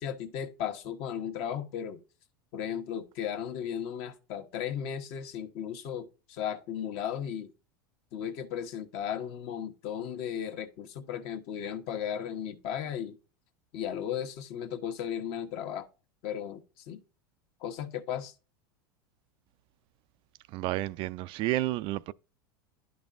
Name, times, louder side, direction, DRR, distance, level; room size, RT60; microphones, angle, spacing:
voice 1, 0.0-2.0 2.5-7.5 8.1-13.2 13.7-15.9 16.2-17.0 17.6-18.3, left 9 dB, 55° left, 1.1 m, -35 dB
voice 2, 20.5-22.1, right 17 dB, 50° right, 0.3 m, -31 dB
10.5 x 5.3 x 2.5 m
hypercardioid pair, 105°, 12 cm